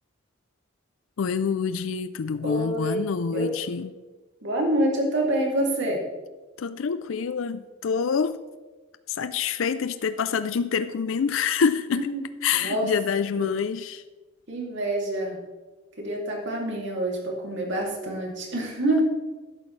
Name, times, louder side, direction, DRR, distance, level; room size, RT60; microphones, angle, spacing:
voice 1, 1.2-3.9 6.6-8.4 9.1-12.1 12.4-14.0, left 6 dB, 70° left, 13 dB, 0.4 m, -26 dB
voice 2, 2.4-3.0 3.3-3.5 4.4-6.0 12.0-12.2 12.5-12.9 13.4-13.5 14.5-15.4 16.0-19.0, right 1 dB, 60° right, -1 dB, 2.6 m, -26 dB
12.5 x 11.5 x 3.2 m, 1.2 s
head